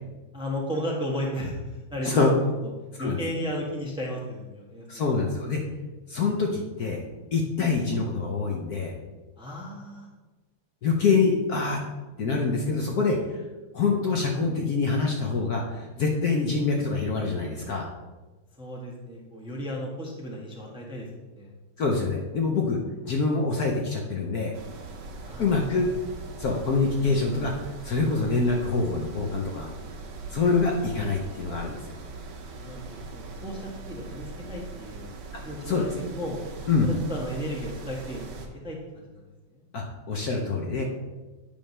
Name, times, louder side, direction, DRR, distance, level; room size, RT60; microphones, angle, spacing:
voice 1, 0.3-2.3 3.0-5.0 9.4-10.1 18.6-21.1 21.3-21.5 25.2-25.8 32.5-32.8 33.1-35.0 35.4-36.4 36.8-38.3 38.6-39.2 39.5-39.6, equal, 5° right, -2 dB, 0.8 m, -34 dB
voice 2, 4.9-5.6 6.1-7.0 7.3-8.9 10.8-11.8 12.2-13.5 13.7-17.9 21.8-24.6 25.4-25.9 26.4-29.7 30.3-32.0 35.7-35.8 36.7-36.9 39.7-40.8, left 4 dB, 60° left, 0 dB, 1.1 m, -25 dB
sound 1, 24.5-38.5, right 3 dB, 75° right, 1.7 m, -41 dB
8.9 x 3.5 x 5.4 m, 1.2 s
omnidirectional pair, 2.2 m